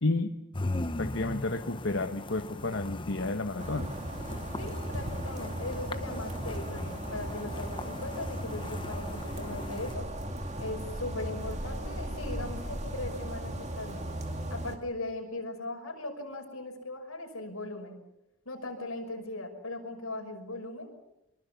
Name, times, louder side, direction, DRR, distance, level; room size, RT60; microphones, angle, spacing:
voice 1, 0.0-0.3 1.0-3.9, left 2 dB, 60° left, 6 dB, 1.1 m, -31 dB
sound 1, 0.5-9.9, left 2 dB, 20° left, 0.9 m, -39 dB
sound 2, 3.6-14.8, right 1 dB, 30° right, 2.5 m, -37 dB
voice 2, 4.6-10.0 10.6-14.1 14.5-18.0 18.5-20.9, left 2 dB, 80° left, 3 dB, 5.9 m, -39 dB
24.5 x 23.5 x 7.1 m, 0.88 s
head